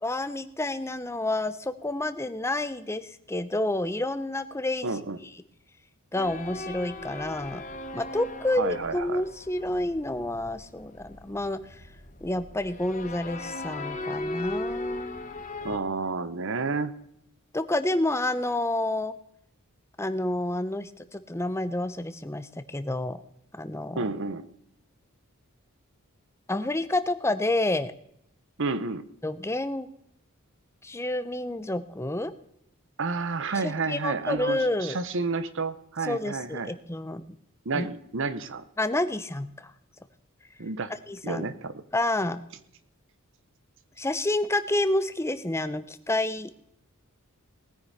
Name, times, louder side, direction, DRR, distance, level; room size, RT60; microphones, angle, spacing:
voice 1, 0.0-5.3 6.1-7.7 7.9-11.8 12.2-15.4 17.5-19.1 20.0-23.2 23.5-24.0 26.5-27.9 29.2-29.9 30.8-32.3 33.5-35.0 36.0-37.2 37.7-37.9 38.8-39.7 41.1-41.5 41.9-42.4 44.0-46.6, left 1 dB, 10° left, 12 dB, 0.7 m, -29 dB
voice 2, 4.8-5.2 8.6-9.2 15.6-16.9 24.0-24.4 28.6-29.0 33.0-36.7 37.6-38.6 40.6-40.9 41.2-41.7, right 4 dB, 60° right, 14 dB, 0.9 m, -30 dB
sound 1, 6.1-15.8, left 2 dB, 35° left, 1.2 m, -38 dB
19.5 x 9.6 x 4.1 m, 0.74 s
head